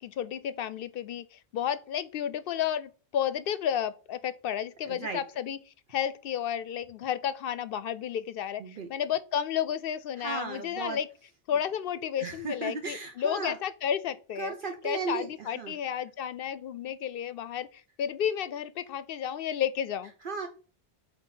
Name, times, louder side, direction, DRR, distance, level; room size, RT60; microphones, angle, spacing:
voice 1, 0.0-5.6 5.9-11.1 11.5-14.5 14.8-20.1, left 9 dB, 70° left, 0.7 m, -32 dB
voice 2, 4.9-5.2 8.6-8.9 10.2-11.0 12.2-13.6 14.4-15.7 20.2-20.5, right 4 dB, 60° right, 0.8 m, -36 dB
8.1 x 2.7 x 5.6 m
omnidirectional pair, 1.0 m